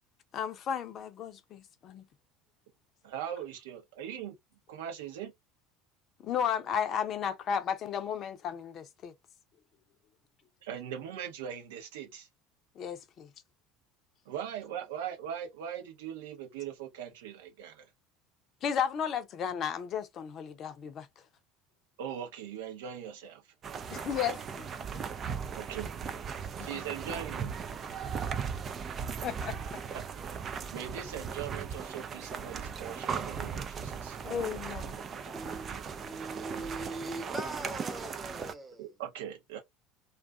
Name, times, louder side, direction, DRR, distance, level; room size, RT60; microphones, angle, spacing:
voice 1, 0.3-2.0 6.2-9.1 12.8-13.3 18.6-21.1 23.9-24.7 26.6-26.8 29.2-29.8 34.2-34.9 35.4-35.6, left 8 dB, 45° left, 0.6 m, -34 dB
voice 2, 3.0-4.4 4.7-5.3 10.6-12.3 14.3-17.9 22.0-23.4 25.6-25.9 26.6-27.6 29.9-30.0 30.7-34.2 36.5-36.7 38.8-39.6, right 9 dB, 70° right, 0.7 m, -40 dB
sound 1, 23.6-38.5, right 6 dB, 40° right, 0.4 m, -38 dB
voice 3, 35.3-38.9, right 2 dB, 15° right, 1.0 m, -41 dB
2.4 x 2.4 x 2.3 m
hypercardioid pair, 70°, 0 cm